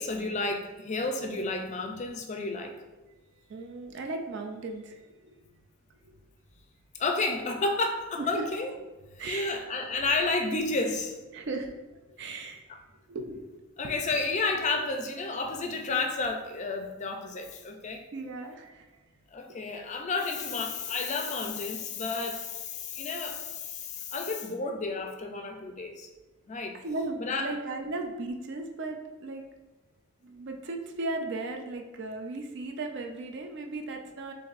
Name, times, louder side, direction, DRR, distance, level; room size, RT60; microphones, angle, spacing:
voice 1, 0.0-2.8 7.0-8.7 9.2-11.1 13.8-18.0 19.3-26.1 26.5-26.8 27.2-27.5, left 3 dB, 30° left, 4 dB, 0.4 m, -31 dB
voice 2, 3.5-5.4 8.2-8.5 9.2-9.5 11.3-12.7 13.1-14.0 18.1-19.0 26.7-29.4 30.2-34.3, right 2 dB, 55° right, 4 dB, 0.4 m, -36 dB
6.9 x 2.6 x 2.5 m, 1.2 s
head